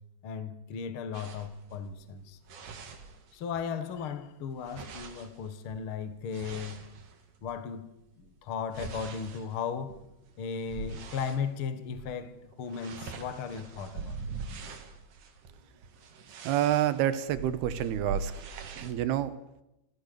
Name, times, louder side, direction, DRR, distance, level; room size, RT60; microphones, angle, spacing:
voice 1, 0.2-2.4 3.3-6.8 7.4-7.9 8.2-10.0 10.4-14.2, left 6 dB, 50° left, 1.6 m, -36 dB
sound 1, 1.1-3.7 4.0-7.6 8.1-11.5 11.9-12.2 12.4-19.0, right 4 dB, 55° right, 3.3 m, -43 dB
voice 2, 16.4-18.3 18.8-19.3, right 11 dB, 80° right, 3.2 m, -28 dB
29.5 x 15.0 x 6.8 m
omnidirectional pair, 4.6 m